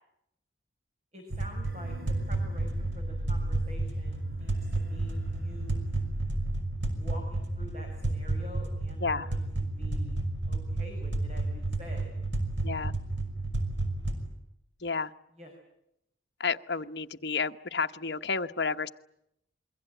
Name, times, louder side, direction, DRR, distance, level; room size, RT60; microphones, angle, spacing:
voice 1, 1.1-2.0 2.3-5.8 6.9-10.2 10.5-12.1 15.3-15.5, equal, 35° right, 3 dB, 5.5 m, -47 dB
sound 1, 1.3-14.3, right 2 dB, 70° right, 6.0 m, -32 dB
sound 2, 1.6-6.6, equal, 50° right, 4.2 m, -39 dB
voice 2, 16.4-18.9, left 5 dB, 60° left, 7 dB, 1.0 m, -31 dB
27.5 x 23.0 x 9.0 m, 0.81 s
head